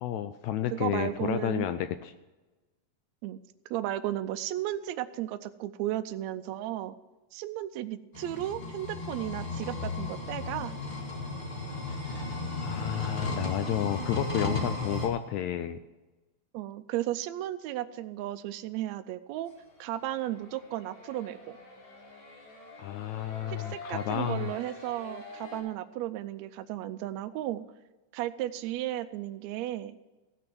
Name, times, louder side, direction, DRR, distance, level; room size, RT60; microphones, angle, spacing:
voice 1, 0.0-2.1 12.6-15.8 22.8-24.5, left 11 dB, 80° left, 10 dB, 1.7 m, -31 dB
voice 2, 0.7-1.7 3.2-3.4 3.7-6.9 7.3-10.8 16.5-19.5 19.8-21.4 23.5-27.7 28.1-30.0, right 13 dB, 85° right, 10 dB, 1.6 m, -34 dB
sound 1, 8.1-15.1, left 3 dB, 20° left, 1.4 m, -34 dB
sound 2, 19.4-25.6, left 2 dB, 65° left, 4.0 m, -47 dB
16.0 x 6.4 x 6.0 m, 1.1 s
omnidirectional pair, 3.6 m